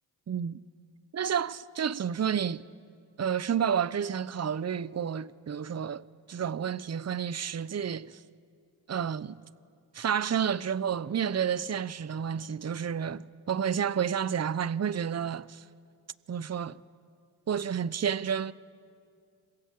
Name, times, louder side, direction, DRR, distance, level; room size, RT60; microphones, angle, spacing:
voice 1, 1.1-2.6 3.2-8.2 8.9-9.4 9.9-15.6 16.3-16.8 17.5-18.5, right 8 dB, 35° right, 0.9 m, -30 dB
27.0 x 26.0 x 7.7 m
supercardioid pair, 50°, 45 cm